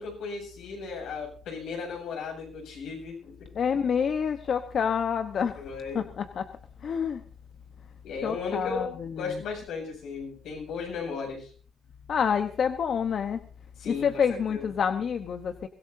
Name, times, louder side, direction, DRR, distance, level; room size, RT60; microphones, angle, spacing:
voice 1, 0.0-3.5 5.6-6.0 8.0-11.5 13.8-14.7, left 5 dB, 85° left, 1 dB, 7.9 m, -36 dB
voice 2, 3.5-5.6 5.9-6.5 6.8-7.2 8.2-9.4 12.1-13.4 13.9-15.7, left 7 dB, 55° left, 8 dB, 1.0 m, -28 dB
23.5 x 17.0 x 2.7 m, 0.40 s
cardioid pair, 90°, 0 cm